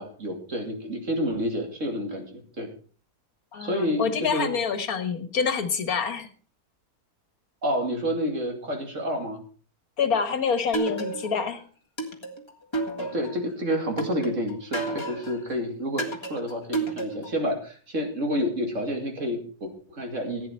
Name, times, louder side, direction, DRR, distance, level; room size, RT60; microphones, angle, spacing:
voice 1, 0.0-2.7 3.6-4.5 7.6-9.4 13.0-20.5, equal, 50° right, 3 dB, 2.8 m, -29 dB
voice 2, 3.5-6.3 10.0-11.6, left 6 dB, 70° left, 10 dB, 1.8 m, -27 dB
sound 1, 10.7-11.5 12.0-13.4 14.0-15.4 16.0-17.4, right 2 dB, 20° left, 1.8 m, -31 dB
15.5 x 9.2 x 4.5 m, 0.40 s
omnidirectional pair, 1.6 m